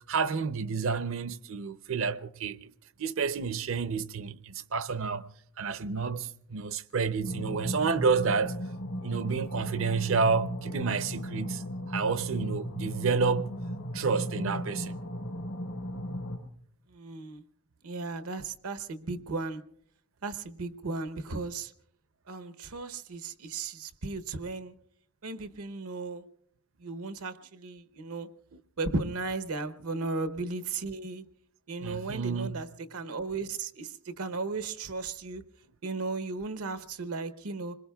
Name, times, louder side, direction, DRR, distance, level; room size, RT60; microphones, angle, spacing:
voice 1, 0.1-2.7 3.0-5.3 5.6-8.6 9.0-11.6 11.9-13.5 13.9-15.0 31.8-32.6, right 5 dB, 60° right, 0.6 m, -29 dB
sound 1, 7.2-16.4, equal, 85° left, 3.8 m, -36 dB
voice 2, 16.9-17.4 17.8-19.6 20.2-21.7 22.3-24.7 25.2-26.2 26.8-28.3 28.8-31.2 31.7-35.4 35.8-37.7, right 3 dB, 85° right, 0.9 m, -35 dB
26.5 x 21.5 x 2.3 m
head